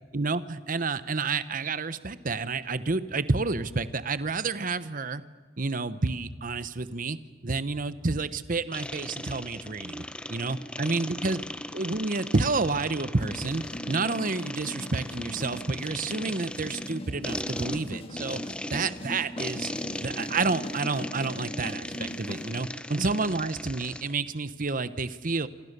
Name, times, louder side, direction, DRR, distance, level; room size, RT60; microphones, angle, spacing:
voice 1, 0.1-5.2 5.6-7.2 7.4-10.0 10.3-11.4 11.7-18.4 18.7-19.7 20.0-25.5, right 3 dB, 45° right, 14 dB, 0.9 m, -29 dB
sound 1, 8.7-24.1, left 1 dB, 5° left, 0.7 m, -38 dB
sound 2, 13.2-22.6, left 1 dB, 30° left, 2.2 m, -40 dB
27.5 x 26.5 x 6.8 m, 1.5 s
head